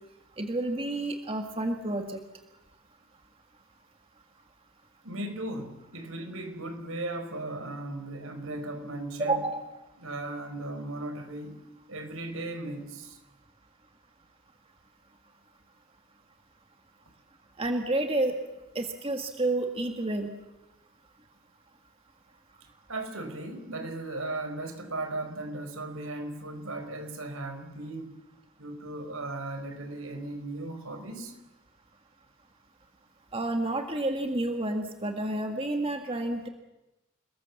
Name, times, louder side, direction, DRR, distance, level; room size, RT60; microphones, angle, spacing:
voice 1, 0.4-2.2 9.2-9.7 17.6-18.4 18.8-20.3 33.3-36.5, right 2 dB, 25° right, 5 dB, 1.8 m, -30 dB
voice 2, 5.0-9.4 10.0-11.6 11.9-13.2 22.9-28.2 28.6-31.3, right 2 dB, 80° right, 7 dB, 4.5 m, -37 dB
28.5 x 20.5 x 7.2 m, 0.99 s
head